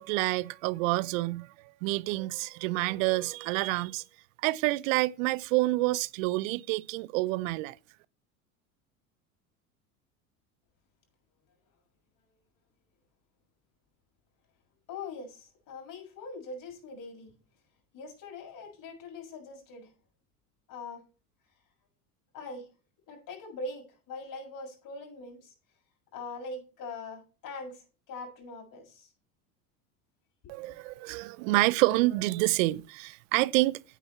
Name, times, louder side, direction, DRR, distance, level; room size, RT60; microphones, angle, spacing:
voice 1, 0.0-4.0 4.4-7.8 30.5-33.8, right 20 dB, 60° right, 0.7 m, -28 dB
voice 2, 14.9-17.3 17.9-19.9 20.7-21.0 22.3-22.7 23.1-25.5 26.1-29.1 30.4-30.5, left 3 dB, 45° left, 6.9 m, -42 dB
9.4 x 9.0 x 4.4 m
hypercardioid pair, 85°, 44 cm